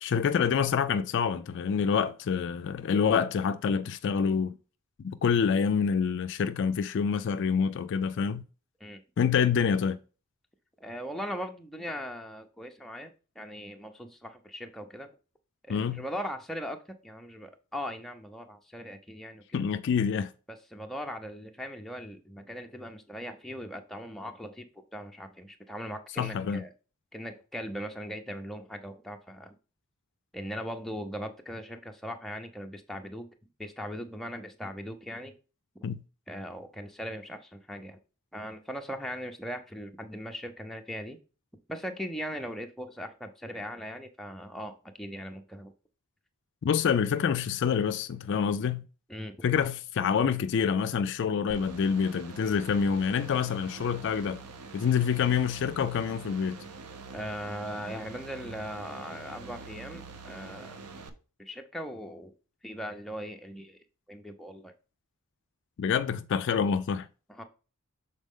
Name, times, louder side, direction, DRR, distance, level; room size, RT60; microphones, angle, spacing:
voice 1, 0.0-4.6 5.0-8.4 9.2-10.0 15.7-16.0 19.5-20.3 26.2-26.6 35.8-36.0 46.6-48.8 49.4-54.4 54.7-56.6 65.8-67.1, left 6 dB, 55° left, 0.3 m, -27 dB
voice 2, 10.8-13.1 13.4-15.1 15.6-19.4 20.5-26.7 27.1-29.5 30.3-33.3 33.6-35.3 36.3-38.0 38.3-41.2 41.7-45.7 49.1-49.4 57.1-60.8 61.4-62.3 62.6-63.8 64.1-64.7 67.3-67.4, equal, ahead, 0.6 m, -39 dB
sound 1, 51.5-61.1, right 4 dB, 90° right, 0.7 m, -45 dB
6.4 x 4.1 x 3.6 m
head